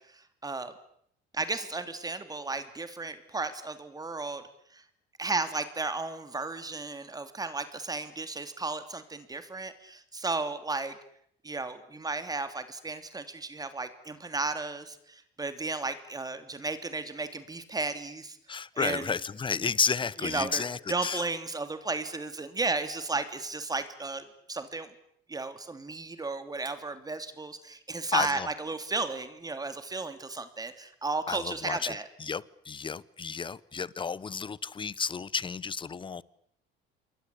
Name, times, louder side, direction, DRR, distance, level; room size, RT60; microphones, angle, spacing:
voice 1, 0.1-0.7 1.3-4.4 4.7-4.8 5.2-10.9 11.4-18.4 18.7-19.1 20.2-20.6 20.9-24.9 25.3-32.0, right 3 dB, 15° right, 3.1 m, -34 dB
voice 2, 18.5-21.3 28.1-28.5 31.3-36.2, left 5 dB, 25° left, 1.0 m, -32 dB
27.5 x 23.0 x 8.5 m
cardioid pair, 110°, 21 cm